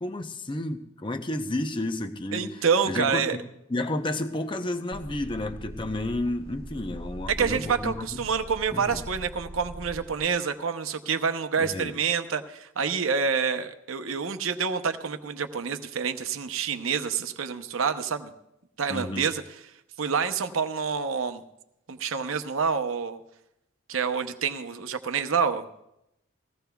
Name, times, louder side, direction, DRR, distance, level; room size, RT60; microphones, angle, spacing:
voice 1, 0.0-3.4 3.7-8.3 8.7-9.0 11.6-11.9 18.9-19.3, left 1 dB, 25° left, 7 dB, 0.7 m, -31 dB
voice 2, 2.3-3.4 7.3-18.3 18.8-19.6 20.0-21.4 21.9-23.2 23.9-25.7, right 6 dB, 75° right, 8 dB, 0.7 m, -27 dB
sound 1, 4.9-10.3, right 1 dB, 45° right, 0.8 m, -41 dB
21.0 x 16.0 x 2.3 m, 0.84 s
head